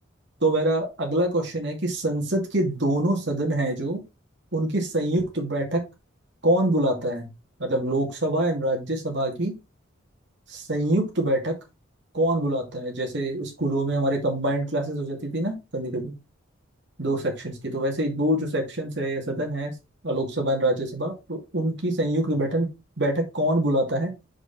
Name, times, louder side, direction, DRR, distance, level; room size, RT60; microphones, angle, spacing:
voice 1, 0.4-4.0 4.5-5.8 6.4-7.3 7.6-9.5 10.5-11.5 12.1-16.1 17.0-19.7 20.0-22.7 23.0-24.1, right 1 dB, 60° right, 1 dB, 2.7 m, -25 dB
6.3 x 5.1 x 4.4 m, 0.25 s
head